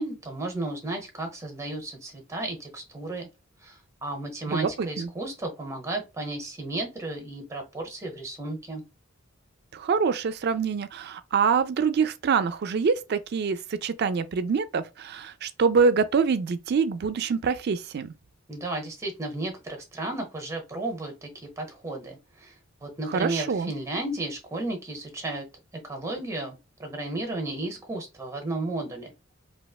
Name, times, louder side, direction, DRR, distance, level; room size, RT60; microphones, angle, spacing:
voice 1, 0.0-3.3 3.6-8.8 18.5-21.3 21.6-22.5 22.8-25.5 25.7-29.1, right 2 dB, 15° right, 0.9 m, -33 dB
voice 2, 4.5-5.1 9.7-18.1 23.1-23.7, right 5 dB, 50° right, 0.4 m, -25 dB
3.1 x 2.8 x 2.3 m
head